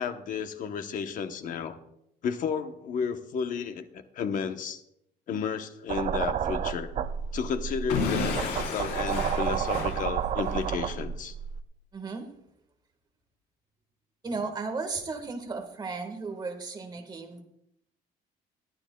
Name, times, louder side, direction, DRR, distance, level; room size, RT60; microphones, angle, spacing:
voice 1, 0.0-1.8 2.2-4.8 5.3-6.9 7.3-11.3, left 6 dB, 50° left, 8 dB, 0.9 m, -32 dB
sound 1, 5.9-11.6, right 8 dB, 45° right, 0.5 m, -31 dB
Explosion / Shatter, 7.9-10.7, left 4 dB, 85° left, 3.9 m, -32 dB
voice 2, 11.9-12.3 14.2-17.4, right 4 dB, 25° right, 5 dB, 1.5 m, -35 dB
21.5 x 9.7 x 2.3 m, 0.79 s
cardioid pair, 150°, 17 cm